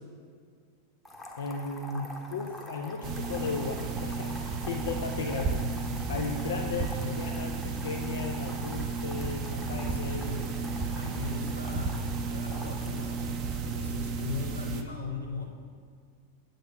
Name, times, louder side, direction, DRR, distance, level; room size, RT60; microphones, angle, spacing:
sound 1, 1.0-13.8, left 1 dB, 10° left, 0.9 m, -46 dB
voice 1, 1.4-10.3, left 4 dB, 60° left, 1 dB, 0.5 m, -35 dB
sound 2, 3.0-14.8, right 4 dB, 35° right, 0.6 m, -33 dB
voice 2, 6.6-7.3 9.6-10.6 10.9-13.2 13.6-15.6, left 4 dB, 85° left, -1 dB, 1.1 m, -40 dB
7.9 x 3.8 x 6.6 m, 2.1 s
figure-of-eight pair, 90°, 0 cm